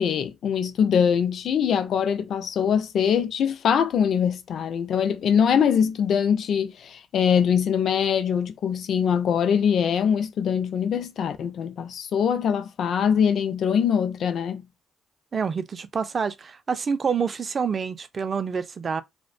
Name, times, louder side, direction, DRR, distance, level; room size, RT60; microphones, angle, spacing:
voice 1, 0.0-14.7, left 7 dB, 65° left, 0.3 m, -23 dB
voice 2, 15.3-19.0, right 6 dB, 40° right, 0.3 m, -27 dB
2.4 x 2.1 x 2.4 m
cardioid pair, 90°, 0 cm